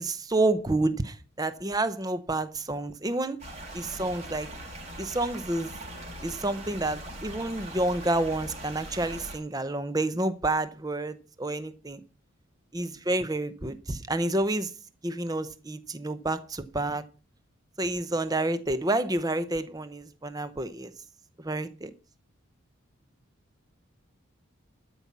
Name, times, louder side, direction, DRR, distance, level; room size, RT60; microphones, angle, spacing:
voice 1, 0.0-3.4 3.7-4.5 5.0-5.7 6.2-12.0 12.7-14.7 15.0-17.0 17.8-20.9 21.4-21.9, right 2 dB, 20° right, 0.7 m, -29 dB
sound 1, 3.4-9.4, right 1 dB, 35° right, 4.1 m, -41 dB
12.0 x 5.5 x 7.3 m
head